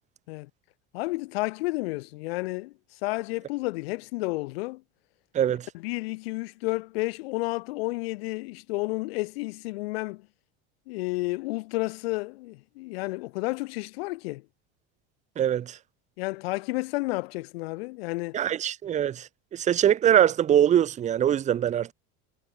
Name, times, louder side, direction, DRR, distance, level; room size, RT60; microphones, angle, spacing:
voice 1, 0.9-2.7 3.0-4.8 5.7-10.3 10.9-14.4 16.2-18.4, left 23 dB, 80° left, 7.9 m, -31 dB
voice 2, 5.3-5.7 15.4-15.8 18.3-21.9, right 10 dB, 25° right, 1.3 m, -23 dB
cardioid pair, 160°, 30 cm